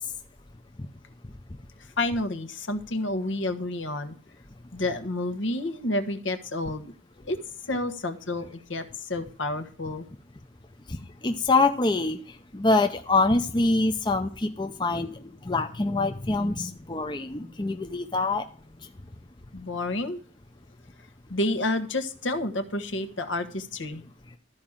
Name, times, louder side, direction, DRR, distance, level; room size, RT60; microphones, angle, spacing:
voice 1, 2.0-4.1 4.7-6.9 7.3-7.4 7.7-10.1 19.5-20.2 21.3-24.0, left 2 dB, 65° left, 8 dB, 1.3 m, -29 dB
voice 2, 11.2-12.2 12.5-15.1 15.5-18.4, left 3 dB, 25° left, 5 dB, 0.7 m, -24 dB
13.5 x 5.0 x 7.3 m, 0.42 s
head